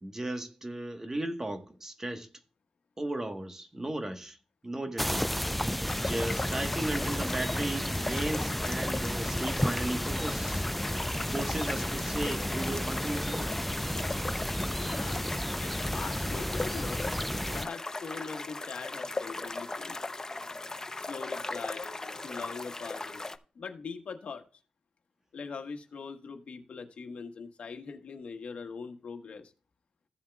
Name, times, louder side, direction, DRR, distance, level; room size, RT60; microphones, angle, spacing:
voice 1, 0.0-2.3 3.0-4.4 4.6-5.3 6.0-10.6 11.3-13.5, right 1 dB, 25° right, 1.3 m, -35 dB
sound 1, 5.0-17.7, equal, 5° left, 0.3 m, -32 dB
sound 2, 5.8-23.4, left 2 dB, 25° left, 0.7 m, -38 dB
voice 2, 14.8-17.1 17.5-20.0 21.1-23.2 23.5-24.4 25.3-29.5, left 5 dB, 75° left, 1.3 m, -42 dB
15.0 x 7.3 x 2.3 m
cardioid pair, 75°, 2 cm